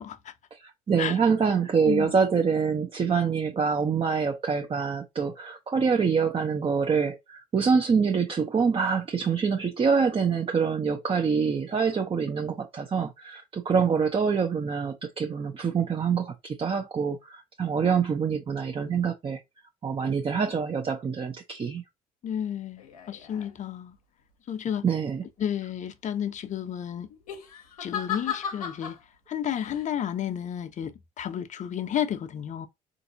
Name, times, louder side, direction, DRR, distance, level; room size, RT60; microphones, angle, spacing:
voice 1, 0.0-0.3 1.0-1.1 1.8-2.1 22.2-24.0 24.5-24.8 25.4-27.1 27.8-29.0 29.3-32.7, left 9 dB, 45° left, 0.6 m, -32 dB
voice 2, 0.5-19.4 19.8-21.8 24.8-25.2, right 6 dB, 30° right, 0.6 m, -25 dB
sound 1, 22.8-23.5 27.1-29.0 29.5-29.8, left 8 dB, 90° left, 0.6 m, -36 dB
4.0 x 2.6 x 2.6 m
hypercardioid pair, 55°, 18 cm